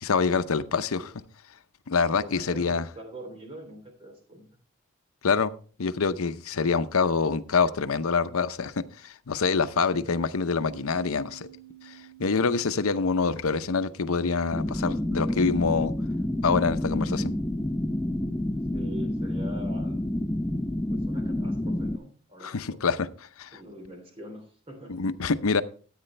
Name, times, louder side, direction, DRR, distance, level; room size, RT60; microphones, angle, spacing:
voice 1, 0.0-1.1 1.9-2.8 5.2-5.5 5.8-11.5 11.8-15.9 16.4-17.3 22.4-23.1 23.4-23.6 24.9-25.6, left 5 dB, 80° left, 0.7 m, -26 dB
voice 2, 0.5-1.1 2.2-4.4 6.6-6.9 9.9-10.3 18.5-20.1 20.9-22.8 23.5-25.0, equal, 25° right, 3.1 m, -45 dB
sound 1, 10.5-15.8, right 14 dB, 75° right, 6.3 m, -52 dB
sound 2, 14.5-22.0, left 1 dB, 10° left, 0.5 m, -29 dB
14.0 x 9.0 x 3.3 m
head